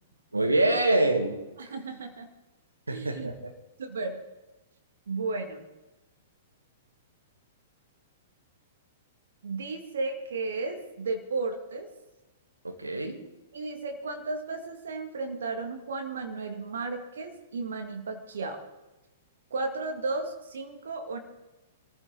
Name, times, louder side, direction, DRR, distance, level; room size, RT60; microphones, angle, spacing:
voice 1, 0.3-1.4 2.9-3.5 12.6-13.2, right 1 dB, 80° right, 5 dB, 2.2 m, -25 dB
voice 2, 1.6-2.3 2.9-3.3 3.8-4.2 5.1-5.6 9.4-11.9 13.5-18.6 19.5-21.2, right 3 dB, 65° right, 4 dB, 2.2 m, -34 dB
23.5 x 14.5 x 4.0 m, 1.1 s
figure-of-eight pair, 105°, 0 cm